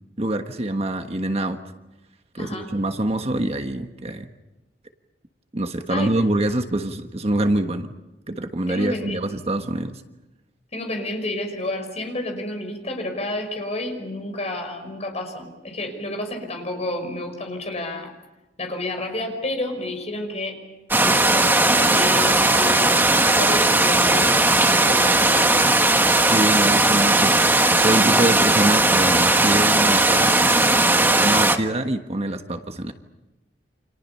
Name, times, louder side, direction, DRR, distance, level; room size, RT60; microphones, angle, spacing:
voice 1, 0.2-1.6 2.3-4.3 5.5-7.9 8.3-10.0 26.2-32.9, right 1 dB, 35° right, 6 dB, 1.3 m, -25 dB
voice 2, 2.4-2.7 5.9-6.2 8.7-9.2 10.7-18.1 18.6-20.6 21.0-25.5, left 1 dB, 40° left, 4 dB, 5.5 m, -30 dB
sound 1, 20.9-31.6, right 2 dB, 10° right, 1.4 m, -17 dB
29.5 x 27.0 x 5.6 m, 1.0 s
head